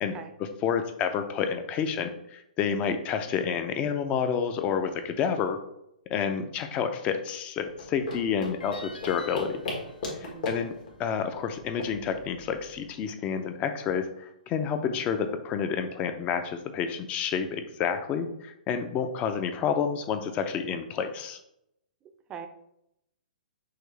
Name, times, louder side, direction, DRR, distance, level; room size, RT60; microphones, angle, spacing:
voice 1, 0.4-5.6 6.1-9.6 10.1-10.7 11.0-21.4, left 7 dB, 25° left, 8 dB, 0.5 m, -29 dB
sound 1, 7.7-12.9, left 2 dB, 60° left, 1.5 m, -38 dB
sound 2, 8.6-11.8, left 1 dB, 90° left, 0.6 m, -48 dB
voice 2, 10.2-10.5 22.3-22.5, right 7 dB, 20° right, 8 dB, 0.5 m, -41 dB
5.7 x 2.7 x 3.2 m, 0.79 s
hypercardioid pair, 125°, 5 cm